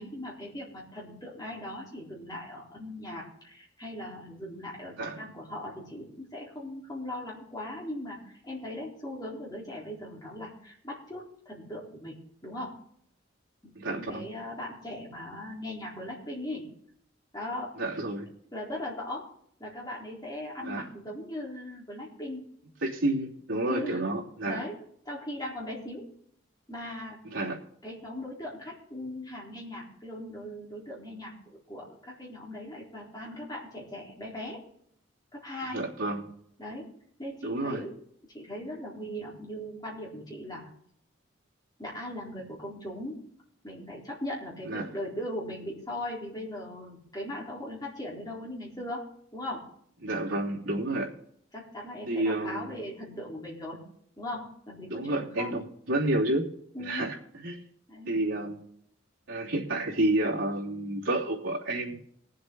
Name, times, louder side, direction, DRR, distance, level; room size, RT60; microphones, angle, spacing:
voice 1, 0.0-12.2 12.4-12.8 13.6-16.6 17.3-17.7 18.5-19.2 19.6-22.4 23.6-24.0 24.4-24.7 25.0-26.1 26.7-27.2 27.8-34.6 35.3-35.9 36.6-36.9 37.2-38.0 38.3-40.6 41.8-43.2 43.6-49.6 51.5-53.8 54.2-55.6 56.7-57.1 57.9-58.1, left 1 dB, 20° left, -4 dB, 4.1 m, -39 dB
voice 2, 13.7-14.3 17.8-18.3 20.6-20.9 22.8-24.6 27.2-27.6 35.7-36.3 37.4-37.8 44.7-44.9 50.0-51.1 52.1-52.7 54.9-56.5 56.8-57.6 58.1-58.6 59.3-62.0, right 1 dB, 75° right, -3 dB, 3.0 m, -30 dB
21.0 x 7.8 x 4.0 m, 0.68 s
head